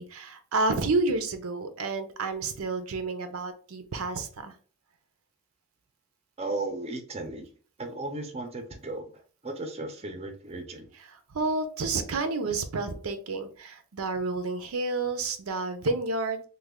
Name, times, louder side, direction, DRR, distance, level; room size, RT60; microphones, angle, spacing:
voice 1, 0.0-4.5 11.3-16.4, right 3 dB, 85° right, 8 dB, 0.6 m, -30 dB
voice 2, 6.4-7.5 7.8-10.9, right 2 dB, 30° right, 4 dB, 0.5 m, -36 dB
3.2 x 2.2 x 3.5 m, 0.41 s
head